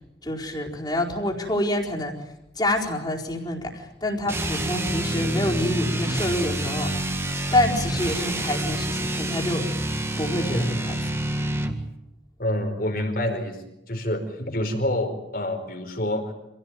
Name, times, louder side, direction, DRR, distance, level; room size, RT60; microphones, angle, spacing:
voice 1, 0.2-7.1 7.5-9.7 10.2-11.1, left 1 dB, 25° left, -1 dB, 4.5 m, -27 dB
sound 1, 4.3-11.8, right 1 dB, 15° right, 1.9 m, -27 dB
voice 2, 12.4-16.3, left 1 dB, 55° left, 5 dB, 4.9 m, -27 dB
27.0 x 17.0 x 9.3 m, 0.86 s
head